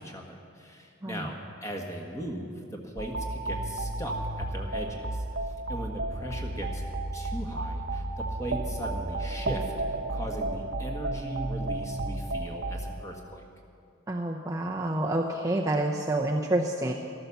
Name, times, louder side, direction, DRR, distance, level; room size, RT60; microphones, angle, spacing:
voice 1, 0.0-5.2 5.7-6.8 7.1-13.4, equal, 15° left, 1 dB, 1.5 m, -39 dB
sound 1, 3.0-12.9, right 2 dB, 55° right, 0.9 m, -32 dB
voice 2, 14.1-16.9, right 1 dB, 15° right, 0 dB, 0.6 m, -28 dB
13.5 x 13.0 x 6.9 m, 2.4 s
head